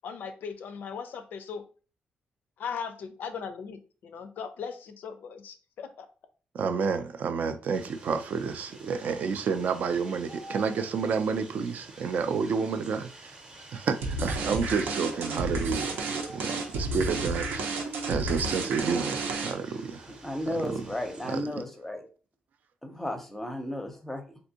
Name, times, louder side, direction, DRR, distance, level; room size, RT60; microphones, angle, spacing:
voice 1, 0.0-1.7 2.6-6.1, left 6 dB, 70° left, 0.4 m, -38 dB
voice 2, 6.5-13.4 13.7-20.1 20.6-20.8 21.2-21.4, right 5 dB, 55° right, 0.3 m, -30 dB
sound 1, 7.7-21.4, right 2 dB, 30° right, 0.7 m, -49 dB
sound 2, 14.0-19.8, right 2 dB, 90° right, 0.7 m, -31 dB
voice 3, 20.2-22.0 22.8-24.2, left 1 dB, 5° left, 0.6 m, -34 dB
3.4 x 2.5 x 2.8 m
cardioid pair, 150°, 3 cm